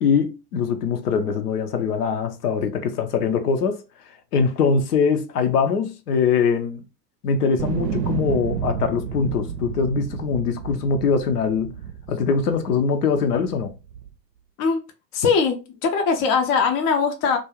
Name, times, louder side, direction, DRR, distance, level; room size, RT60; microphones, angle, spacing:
voice 1, 0.0-3.8 4.3-6.8 7.2-11.7 12.1-13.7, left 5 dB, 65° left, 0.6 m, -22 dB
sound 1, 7.6-12.8 13.4-14.1, right 7 dB, 75° right, 0.6 m, -31 dB
voice 2, 15.1-17.4, left 5 dB, 25° left, 0.4 m, -21 dB
2.4 x 2.2 x 3.0 m
figure-of-eight pair, 80°, 50 cm